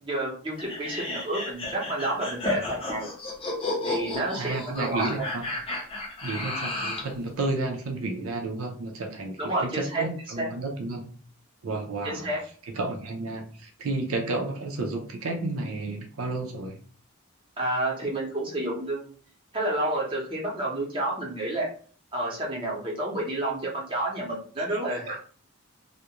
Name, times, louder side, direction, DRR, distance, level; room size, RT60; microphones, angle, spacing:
voice 1, 0.0-3.1 3.8-5.3 9.4-10.1 10.4-10.5 12.0-12.4 17.6-19.1 19.5-21.7 22.1-25.2, right 1 dB, 25° right, -3 dB, 0.7 m, -30 dB
sound 1, 0.6-7.1, left 2 dB, 25° left, 0.5 m, -33 dB
voice 2, 4.3-5.5 6.2-11.1 11.6-12.3 12.7-16.8 24.6-24.8 25.1-25.2, right 2 dB, 80° right, 2 dB, 0.5 m, -32 dB
2.4 x 2.1 x 2.8 m, 0.44 s
head